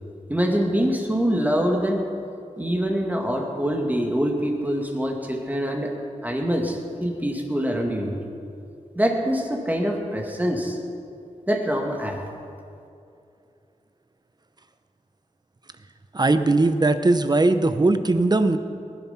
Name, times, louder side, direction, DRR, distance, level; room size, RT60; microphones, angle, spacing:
voice 1, 0.3-2.1 2.6-5.9 6.2-8.2 8.9-10.8 11.5-12.2, equal, 10° right, 1 dB, 2.1 m, -24 dB
voice 2, 16.1-18.6, right 2 dB, 30° right, 10 dB, 0.8 m, -19 dB
20.0 x 12.0 x 5.8 m, 2.6 s
wide cardioid pair, 105°, 13 cm